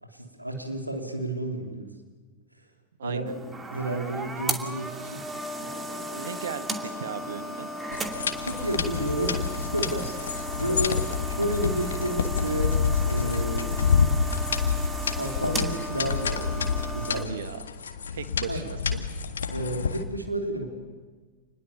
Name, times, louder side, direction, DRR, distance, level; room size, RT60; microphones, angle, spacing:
voice 1, 0.0-1.9 3.0-3.2 3.7-5.2 5.6-6.3 8.4-14.2 15.0-17.3 18.5-18.6 19.5-20.7, right 1 dB, 85° right, 2 dB, 3.3 m, -32 dB
voice 2, 3.0-3.3 6.1-7.7 17.1-17.6 18.1-19.0, right 8 dB, 65° right, 11 dB, 1.4 m, -37 dB
sound 1, 3.3-17.2, right 1 dB, 15° right, 2.6 m, -35 dB
sound 2, 7.9-20.0, left 6 dB, 70° left, 1.8 m, -28 dB
29.0 x 21.0 x 7.1 m, 1.4 s
figure-of-eight pair, 90°, 0 cm